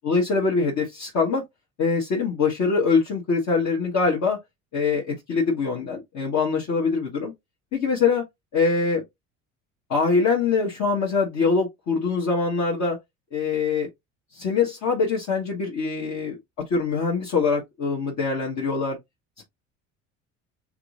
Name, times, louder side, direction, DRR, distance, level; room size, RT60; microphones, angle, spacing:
voice 1, 0.0-1.4 1.8-4.4 4.7-7.3 7.7-8.2 8.5-9.0 9.9-13.0 13.3-13.9 14.3-16.4 16.7-19.0 19.4-19.5, left 4 dB, 45° left, 1.6 m, -23 dB
4.6 x 3.7 x 2.6 m
figure-of-eight pair, 65°, 40 cm